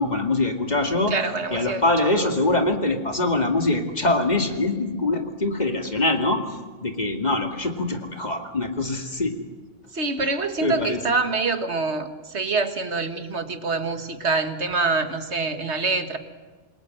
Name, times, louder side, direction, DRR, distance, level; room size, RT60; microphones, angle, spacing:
voice 1, 0.0-1.1 1.5-6.4 6.8-9.3 10.2-10.3 10.6-11.0, left 2 dB, 35° left, 4 dB, 2.5 m, -23 dB
voice 2, 1.1-1.8 2.2-2.3 9.9-16.2, right 3 dB, 65° right, 8 dB, 1.9 m, -25 dB
27.5 x 22.0 x 7.8 m, 1.4 s
omnidirectional pair, 1.2 m